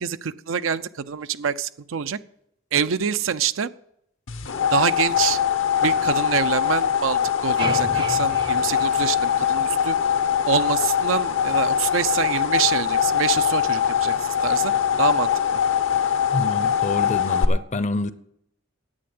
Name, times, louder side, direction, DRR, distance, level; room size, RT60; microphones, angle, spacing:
voice 1, 0.0-2.2 2.7-3.7 4.7-5.4 5.8-10.0 10.5-14.7 15.0-15.6, right 7 dB, 80° right, 0.5 m, -26 dB
sound 1, 4.3-17.5, left 8 dB, 70° left, 0.9 m, -22 dB
sound 2, 7.6-9.9, right 2 dB, 25° right, 0.6 m, -33 dB
voice 2, 16.3-18.1, left 2 dB, 35° left, 0.6 m, -27 dB
10.0 x 8.6 x 7.8 m
head